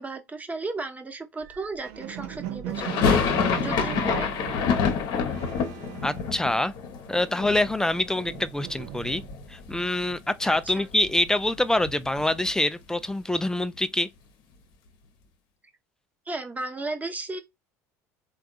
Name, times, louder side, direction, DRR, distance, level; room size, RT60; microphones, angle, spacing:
voice 1, 0.0-4.3 10.4-10.9 16.3-17.4, right 3 dB, 15° right, 0.8 m, -35 dB
sound 1, 1.4-7.0 7.3-9.6, right 10 dB, 70° right, 0.5 m, -38 dB
sound 2, 2.7-8.7 8.9-9.8 10.1-10.2 10.4-12.6, left 6 dB, 55° left, 0.8 m, -28 dB
voice 2, 6.0-6.7 7.1-9.2 9.5-14.1, left 1 dB, 5° left, 0.3 m, -25 dB
3.4 x 2.3 x 2.3 m
hypercardioid pair, 75°, 9 cm